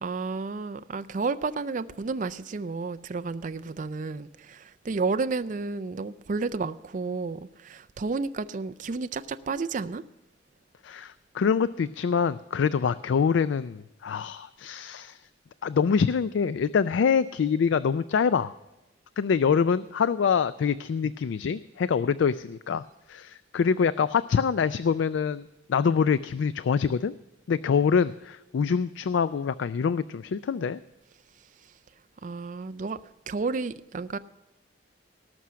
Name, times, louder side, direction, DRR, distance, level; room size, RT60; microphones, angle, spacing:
voice 1, 0.0-10.0 32.2-33.0 33.3-34.2, right 4 dB, 40° right, 11 dB, 0.4 m, -31 dB
voice 2, 10.8-15.2 15.6-18.6 19.2-22.8 23.1-27.1 27.5-30.8, left 6 dB, 75° left, 15 dB, 0.3 m, -25 dB
18.5 x 6.3 x 5.7 m, 1.0 s
head